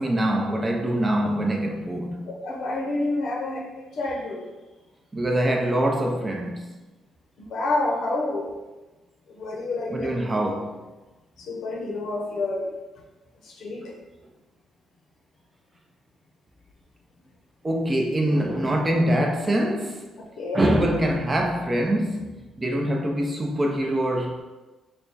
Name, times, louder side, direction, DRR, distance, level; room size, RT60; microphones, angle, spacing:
voice 1, 0.0-2.3 5.1-6.7 9.9-10.9 17.6-20.1 20.5-24.4, right 1 dB, 25° right, 0.6 m, -24 dB
voice 2, 2.3-4.5 7.4-8.6 9.3-10.3 11.4-12.7 13.4-13.9 20.2-20.8, left 2 dB, 70° left, 0.7 m, -29 dB
3.5 x 2.2 x 3.9 m
cardioid pair, 90°, 0 cm